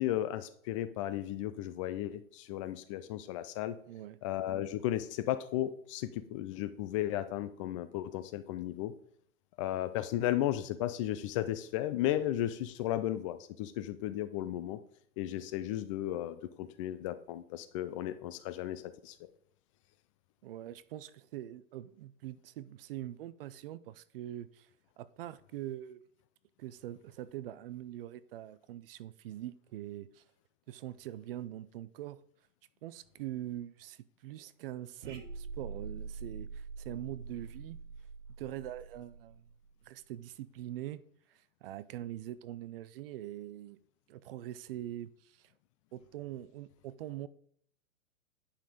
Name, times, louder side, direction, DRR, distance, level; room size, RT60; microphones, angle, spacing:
voice 1, 0.0-3.8 4.2-8.9 9.6-14.8 15.2-19.2, left 13 dB, 25° left, 0.4 m, -34 dB
voice 2, 3.9-4.2 20.4-24.7 25.0-26.0 26.6-30.2 30.7-32.2 32.8-37.8 38.4-39.4 39.9-41.0 41.3-43.8 44.1-45.5 45.9-47.3, right 13 dB, 45° right, 0.6 m, -43 dB
sound 1, 35.0-39.7, right 4 dB, 70° right, 2.1 m, -44 dB
10.0 x 5.7 x 4.9 m
hypercardioid pair, 125°, 40 cm